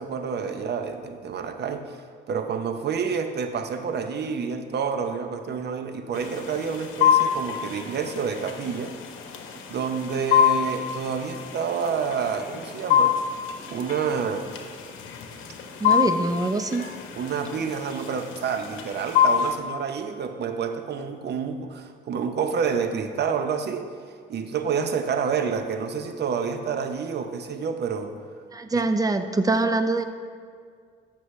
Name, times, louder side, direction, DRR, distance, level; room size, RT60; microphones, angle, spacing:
voice 1, 0.0-2.0 2.3-9.0 9.7-13.2 13.7-14.5 15.8-16.0 17.1-23.9 24.3-28.2 28.7-28.8, right 6 dB, 55° right, 7 dB, 0.8 m, -28 dB
sound 1, 6.1-19.6, left 9 dB, 90° left, 0.9 m, -26 dB
voice 2, 15.8-16.9 28.5-30.0, right 2 dB, 20° right, 8 dB, 0.6 m, -24 dB
14.0 x 6.5 x 3.2 m, 2.1 s
cardioid pair, 90°, 20 cm